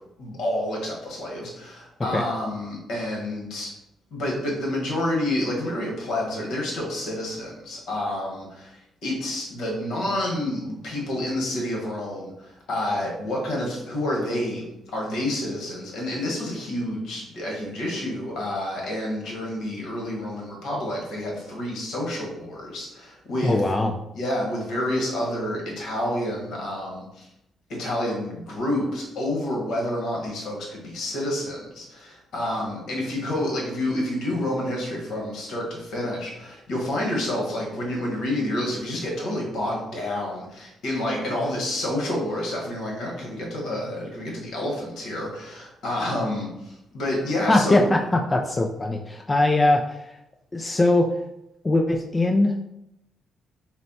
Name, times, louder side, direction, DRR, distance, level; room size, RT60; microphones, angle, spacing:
voice 1, 0.2-3.7 4.1-14.6 14.9-23.7 24.1-27.3 27.7-47.9, left 1 dB, 75° left, -2 dB, 1.3 m, -29 dB
voice 2, 23.4-23.9 47.5-50.2 50.5-51.2 51.6-52.5, left 2 dB, 25° left, 3 dB, 0.3 m, -21 dB
4.1 x 2.2 x 4.1 m, 0.86 s
cardioid pair, 90°, 0 cm